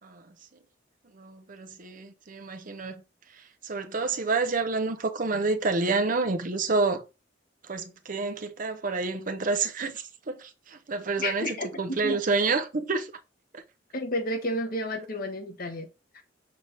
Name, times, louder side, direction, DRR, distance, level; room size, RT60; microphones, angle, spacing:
voice 1, 0.0-0.3 1.1-3.0 3.3-7.0 7.6-13.1 13.5-13.6, right 3 dB, 45° right, 0.8 m, -29 dB
voice 2, 11.2-12.2 13.9-15.9 16.1-16.2, left 1 dB, 50° left, 1.3 m, -31 dB
6.7 x 3.5 x 4.0 m
head